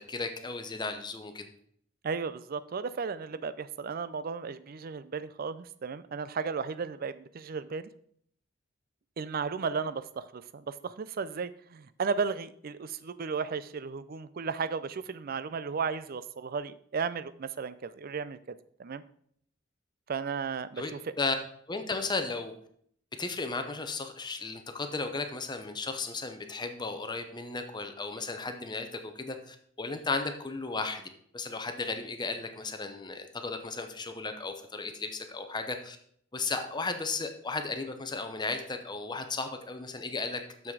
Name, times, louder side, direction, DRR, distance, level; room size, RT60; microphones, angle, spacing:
voice 1, 0.1-1.5 20.8-20.9 21.2-21.4 21.7-22.5 23.2-31.0 31.3-36.0 36.3-40.7, left 3 dB, 25° left, 6 dB, 0.8 m, -35 dB
voice 2, 2.0-7.9 9.2-19.0 20.1-21.0, right 5 dB, 50° right, 15 dB, 0.4 m, -34 dB
6.9 x 6.0 x 4.7 m, 0.63 s
head